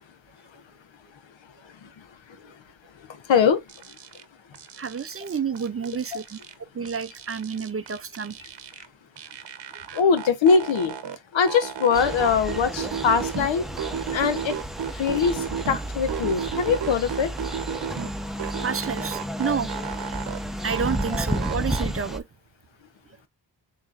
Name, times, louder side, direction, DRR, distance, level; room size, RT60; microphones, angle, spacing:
voice 1, 3.3-3.6 6.1-6.2 9.9-10.9 11.3-13.7 14.1-14.6 15.0-17.3, left 6 dB, 80° left, 0.9 m, -22 dB
sound 1, 3.7-4.2 4.5-6.5 6.8-8.9 9.2-11.2 11.5-13.5 13.8-15.8 16.1-18.1 18.4-20.4 20.7-21.8, right 7 dB, 65° right, 0.8 m, -34 dB
voice 2, 4.8-6.2 6.7-8.3 18.6-19.7 20.6-22.2, right 6 dB, 30° right, 0.5 m, -29 dB
sound 2, 11.9-22.2, equal, ahead, 0.7 m, -32 dB
6.5 x 3.0 x 2.5 m
cardioid pair, 55°, 45 cm